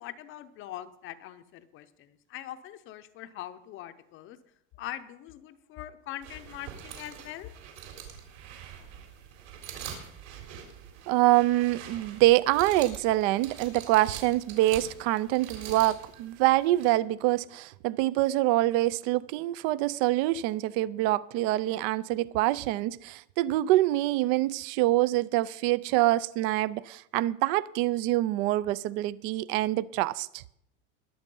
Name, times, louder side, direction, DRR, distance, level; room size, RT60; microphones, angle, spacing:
voice 1, 0.0-4.4 4.7-7.5, left 12 dB, 30° left, 0.7 m, -42 dB
sound 1, 6.2-16.9, right 8 dB, 60° right, 3.7 m, -45 dB
voice 2, 11.1-30.4, right 16 dB, 40° right, 0.4 m, -25 dB
21.5 x 7.4 x 5.4 m
supercardioid pair, 155°, 38 cm